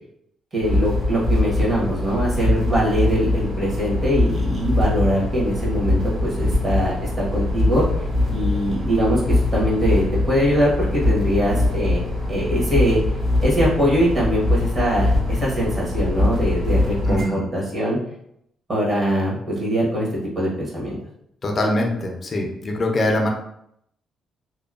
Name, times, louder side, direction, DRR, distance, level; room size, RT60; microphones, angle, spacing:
voice 1, 0.5-7.8 8.3-12.0 12.3-13.0 13.4-18.0 18.7-20.1 20.3-21.0, equal, 45° right, -5 dB, 1.1 m, -22 dB
sound 1, 0.6-17.2, left 2 dB, 60° right, 1.2 m, -22 dB
voice 2, 17.0-17.4 21.4-23.3, left 1 dB, 40° left, 1 dB, 0.4 m, -23 dB
2.8 x 2.1 x 2.3 m, 0.75 s
cardioid pair, 90°, 0 cm